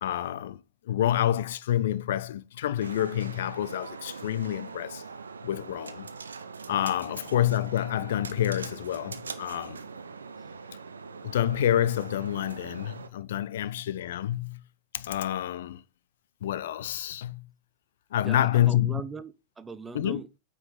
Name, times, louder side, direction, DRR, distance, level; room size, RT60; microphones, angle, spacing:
voice 1, 0.0-5.0 5.4-6.1 6.7-9.8 11.2-14.6 14.9-15.8 16.4-17.5 18.1-19.0 19.9-20.2, left 11 dB, 60° left, 0.5 m, -28 dB
sound 1, 2.8-13.1, right 5 dB, 75° right, 0.7 m, -42 dB
voice 2, 18.2-20.4, right 4 dB, 15° right, 0.6 m, -40 dB
9.0 x 5.1 x 3.9 m
figure-of-eight pair, 90°, 0 cm